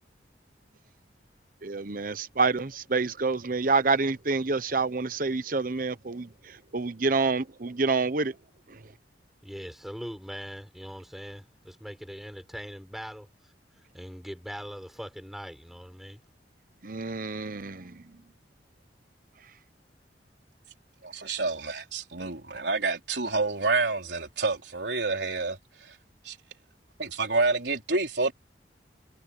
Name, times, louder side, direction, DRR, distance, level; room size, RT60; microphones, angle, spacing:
voice 1, 1.6-8.3 8.7-8.8 16.8-18.0, right 4 dB, 50° right, 1.0 m, -28 dB
voice 2, 9.4-16.2, equal, ahead, 6.0 m, -41 dB
voice 3, 21.0-26.0 26.2-26.4 27.0-28.3, right 3 dB, 75° right, 4.1 m, -28 dB
head